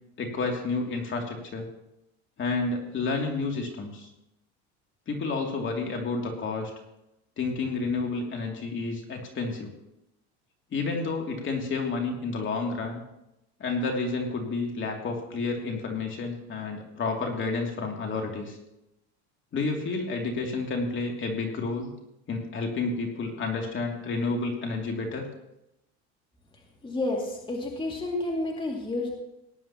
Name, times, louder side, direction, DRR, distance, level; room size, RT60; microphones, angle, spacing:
voice 1, 0.2-1.7 2.4-4.1 5.1-6.7 7.4-9.7 10.7-13.0 13.6-18.6 19.5-21.9 22.3-25.3, left 3 dB, 35° left, 1 dB, 2.7 m, -30 dB
voice 2, 26.8-29.1, left 2 dB, 15° left, 0 dB, 2.4 m, -30 dB
18.5 x 11.0 x 3.0 m, 0.86 s
supercardioid pair, 100°, 33 cm